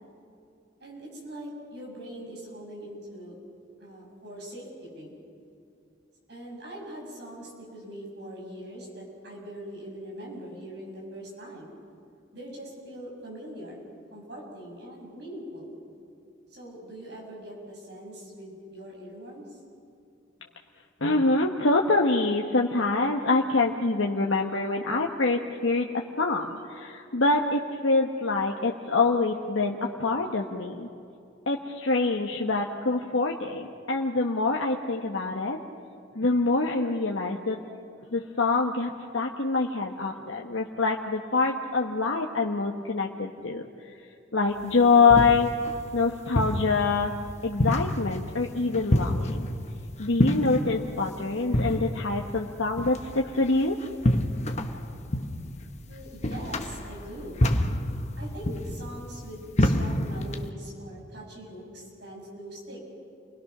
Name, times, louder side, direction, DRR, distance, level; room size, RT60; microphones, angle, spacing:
voice 1, 0.8-3.3 3.8-5.2 6.3-11.8 12.3-15.8 16.5-19.6 55.9-57.4 58.2-62.8, right 1 dB, 60° right, -2 dB, 7.1 m, -42 dB
voice 2, 21.0-30.9 31.5-35.6 36.1-37.6 38.1-43.6 44.3-45.5 45.9-47.1 47.4-49.4 50.0-53.8, left 3 dB, 85° left, -1 dB, 1.2 m, -25 dB
sound 1, 44.6-60.5, left 1 dB, 35° left, 1.1 m, -29 dB
29.5 x 20.5 x 6.1 m, 2.6 s
head